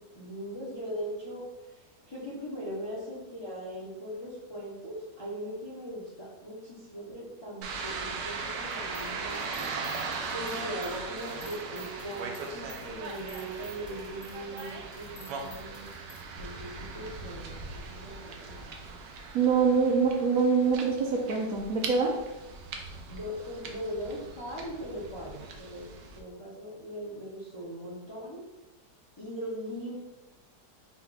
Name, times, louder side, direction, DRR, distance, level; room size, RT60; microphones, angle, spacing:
voice 1, 0.0-9.7 10.3-15.9 16.4-18.8 23.1-28.4 29.2-30.0, equal, 30° left, -5 dB, 0.4 m, -40 dB
sound 1, 7.6-26.2, right 4 dB, 80° right, 1.2 m, -39 dB
sound 2, 8.7-16.2, left 1 dB, 50° left, 1.0 m, -50 dB
voice 2, 19.3-22.1, right 5 dB, 65° right, 0 dB, 1.0 m, -24 dB
5.0 x 2.3 x 4.0 m, 1.0 s
omnidirectional pair, 1.8 m